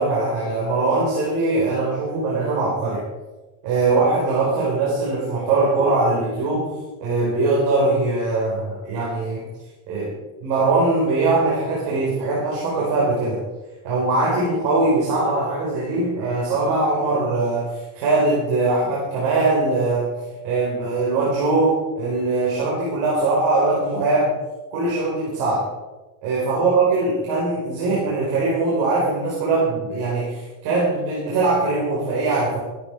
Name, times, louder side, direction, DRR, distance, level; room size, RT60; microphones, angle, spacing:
voice 1, 0.0-3.0 3.6-6.7 7.0-9.4 9.9-10.1 10.4-13.4 13.8-20.1 20.4-24.3 24.7-25.6 26.2-32.6, right 3 dB, 80° right, -5 dB, 4.9 m, -21 dB
15.5 x 13.0 x 4.8 m, 1.2 s
cardioid pair, 145°, 42 cm